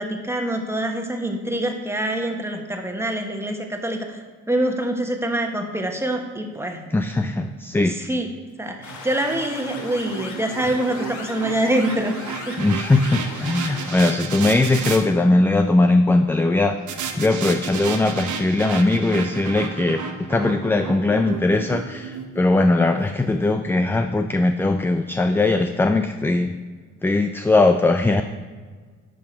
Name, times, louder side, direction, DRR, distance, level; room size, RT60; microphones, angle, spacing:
voice 1, 0.0-6.8 7.9-8.3 8.6-12.1 12.5-12.6, right 1 dB, 10° right, 4 dB, 1.2 m, -25 dB
voice 2, 6.9-7.9 12.6-16.8 17.2-26.5 27.0-28.2, left 2 dB, 10° left, 7 dB, 0.3 m, -20 dB
sound 1, 8.8-13.9, left 3 dB, 75° left, 2.1 m, -38 dB
sound 2, 8.8-15.0 16.9-23.1, right 6 dB, 75° right, 1.0 m, -33 dB
11.0 x 5.8 x 4.5 m, 1.5 s
cardioid pair, 90°, 30 cm